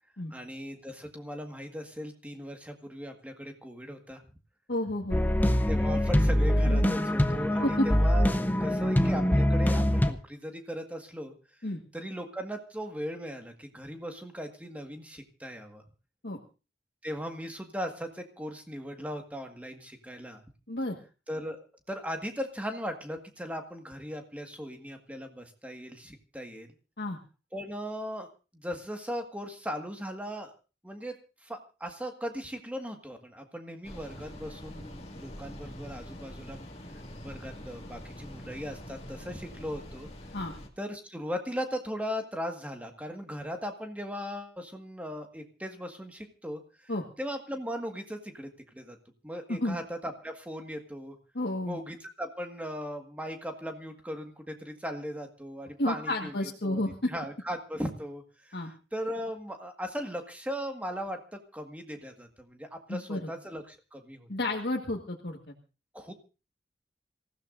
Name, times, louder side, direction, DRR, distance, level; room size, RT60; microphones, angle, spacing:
voice 1, 0.3-4.2 5.7-11.4 11.9-15.8 17.0-20.4 21.3-26.7 27.5-30.5 30.8-31.1 31.4-36.6 37.2-40.1 40.8-46.9 47.2-49.0 49.2-51.2 51.6-56.3 56.6-56.8 57.1-64.3 65.9-66.1, equal, 10° right, 4 dB, 1.7 m, -38 dB
voice 2, 4.7-5.3 6.7-7.0 7.6-7.9 11.6-11.8 16.2-16.4 20.7-21.0 27.0-27.2 40.3-40.5 46.9-47.0 49.6-49.8 51.3-51.8 55.8-57.1 58.5-58.7 62.9-63.3 64.3-65.5, left 1 dB, 70° left, -1 dB, 1.6 m, -31 dB
sound 1, 5.1-10.1, equal, 10° left, 0.7 m, -24 dB
sound 2, 33.8-40.7, equal, 35° left, 2.1 m, -44 dB
26.5 x 15.5 x 2.6 m, 0.32 s
head